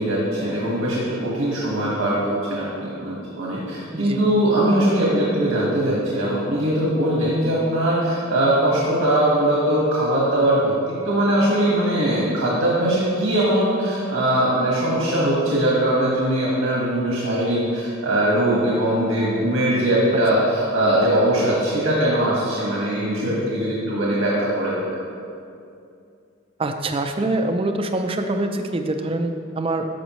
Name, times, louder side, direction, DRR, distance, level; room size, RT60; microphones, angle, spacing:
voice 1, 0.0-10.7 11.0-25.0, right 1 dB, 90° right, -6 dB, 1.5 m, -21 dB
voice 2, 3.9-4.2 20.4-20.5 23.3-23.5 26.6-29.9, right 2 dB, 25° right, 6 dB, 0.4 m, -25 dB
13.5 x 5.3 x 3.1 m, 2.4 s
head